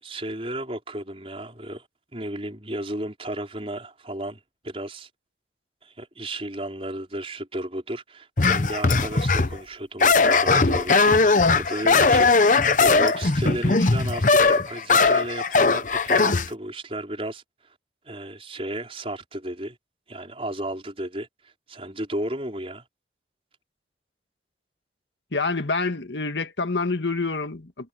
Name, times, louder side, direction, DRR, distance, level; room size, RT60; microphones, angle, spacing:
voice 1, 0.0-1.9 2.1-4.4 4.6-5.1 5.8-17.7 18.0-19.8 20.1-22.8, right 1 dB, 30° right, 5.4 m, -33 dB
sound 1, 8.4-9.6 10.0-16.5, left 4 dB, 45° left, 0.8 m, -19 dB
voice 2, 25.3-27.9, left 3 dB, 85° left, 1.8 m, -27 dB
head